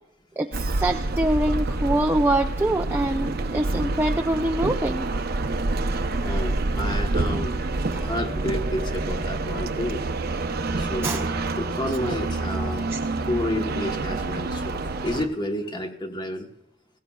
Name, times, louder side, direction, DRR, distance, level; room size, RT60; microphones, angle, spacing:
sound 1, 0.5-15.3, right 2 dB, 55° right, 0.7 m, -27 dB
voice 1, 0.8-5.1 7.9-8.1 11.0-11.3 12.9-13.0, right 1 dB, 10° right, 4 dB, 0.4 m, -24 dB
voice 2, 6.2-7.5 7.9-10.0 10.8-11.3 11.6-12.9 13.2-16.5, left 1 dB, 25° left, 4 dB, 1.1 m, -30 dB
18.5 x 16.5 x 2.3 m, 0.91 s
head